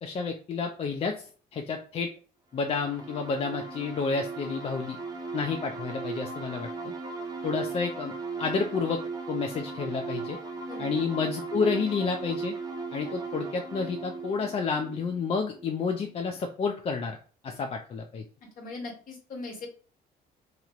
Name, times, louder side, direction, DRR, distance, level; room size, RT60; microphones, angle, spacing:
voice 1, 0.0-2.1 2.5-5.0 5.3-6.9 7.4-8.1 8.4-9.0 9.3-10.4 10.8-12.5 12.9-17.2 17.4-18.2, left 5 dB, 35° left, 4 dB, 0.4 m, -30 dB
sound 1, 2.6-16.1, right 4 dB, 25° right, 0.6 m, -37 dB
voice 2, 10.7-11.0 18.6-19.7, left 3 dB, 55° left, 0 dB, 1.2 m, -40 dB
2.9 x 2.9 x 2.4 m, 0.41 s
cardioid pair, 110°, 17 cm